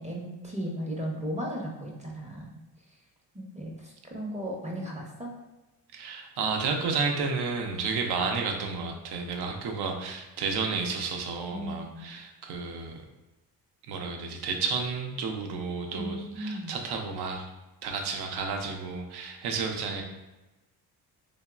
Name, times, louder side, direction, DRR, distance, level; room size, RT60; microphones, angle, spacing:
voice 1, 0.0-2.5 3.3-5.3 11.5-12.1 15.9-16.7, equal, 15° right, -2 dB, 0.6 m, -36 dB
voice 2, 5.9-13.0 13.8-17.5 17.8-20.0, right 4 dB, 70° right, 3 dB, 0.6 m, -31 dB
3.0 x 2.0 x 2.3 m, 1.1 s
supercardioid pair, 60°, 42 cm